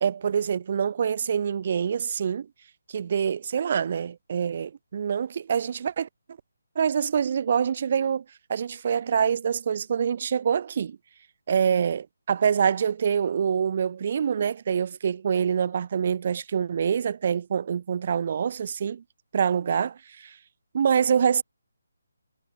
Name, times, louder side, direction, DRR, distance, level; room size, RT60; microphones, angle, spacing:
voice 1, 0.0-2.5 2.9-6.1 6.8-8.2 8.5-11.0 11.5-19.0 19.3-20.4 20.7-21.4, right 7 dB, 35° right, 0.9 m, -25 dB
hypercardioid pair, 175°, 0 cm